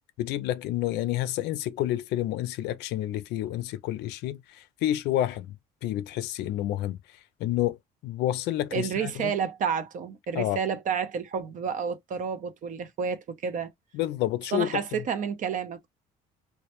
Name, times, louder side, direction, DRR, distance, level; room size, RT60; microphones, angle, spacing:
voice 1, 0.2-4.4 4.8-5.5 5.8-7.0 7.4-7.8 8.0-9.3 10.3-10.6 13.9-15.0, left 13 dB, 85° left, 0.4 m, -29 dB
voice 2, 8.7-13.7 14.5-15.9, right 6 dB, 50° right, 0.5 m, -30 dB
2.2 x 2.1 x 2.9 m
cardioid pair, 110°, 17 cm